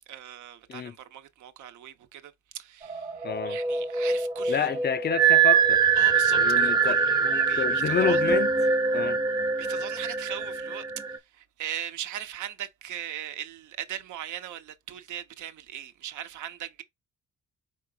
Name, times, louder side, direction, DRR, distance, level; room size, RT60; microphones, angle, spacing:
voice 1, 0.1-4.8 6.0-8.3 9.6-10.8 11.1-16.8, right 11 dB, 75° right, 0.8 m, -39 dB
sound 1, 2.8-11.2, right 5 dB, 15° right, 0.6 m, -24 dB
voice 2, 3.2-3.6 4.5-5.8 6.4-7.1 7.6-8.5 8.9-9.2, left 7 dB, 35° left, 0.4 m, -29 dB
4.6 x 3.9 x 2.3 m
cardioid pair, 90°, 30 cm